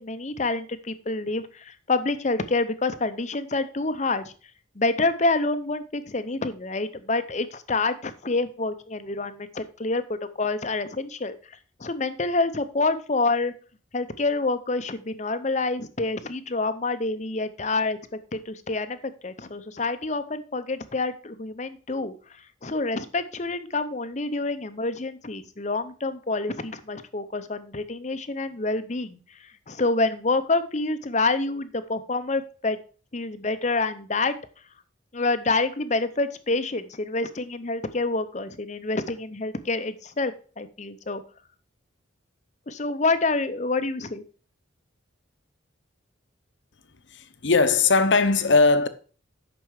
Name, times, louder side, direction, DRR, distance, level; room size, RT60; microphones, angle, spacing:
voice 1, 0.0-4.3 4.8-10.0 10.4-11.4 11.8-13.5 13.9-18.0 18.3-19.0 19.2-22.1 22.6-29.2 29.7-32.8 33.1-34.4 35.1-41.2 42.7-44.2, left 3 dB, 35° left, 0.7 m, -27 dB
voice 2, 47.1-48.9, left 3 dB, 65° left, 0.9 m, -19 dB
9.1 x 6.1 x 4.8 m
head